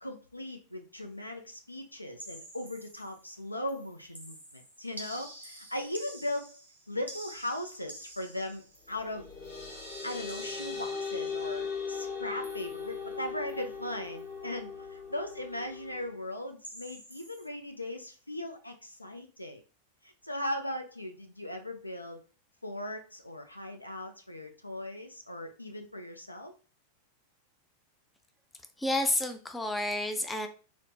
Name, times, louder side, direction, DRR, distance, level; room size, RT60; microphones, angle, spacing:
voice 1, 0.0-6.6 6.9-9.3 10.0-19.6 20.0-22.2 22.6-26.5, left 1 dB, 85° left, 5 dB, 0.4 m, -38 dB
sound 1, 2.2-3.4 3.7-9.6 10.3-11.2 12.4-13.1 13.5-13.8 14.0-14.3 16.6-17.5, right 1 dB, 90° right, 0.8 m, -49 dB
sound 2, 8.9-16.1, left 5 dB, 55° left, 1.4 m, -39 dB
voice 2, 28.8-30.5, left 1 dB, 10° left, 7 dB, 0.4 m, -30 dB
3.2 x 2.0 x 2.6 m, 0.35 s
figure-of-eight pair, 90°, 0 cm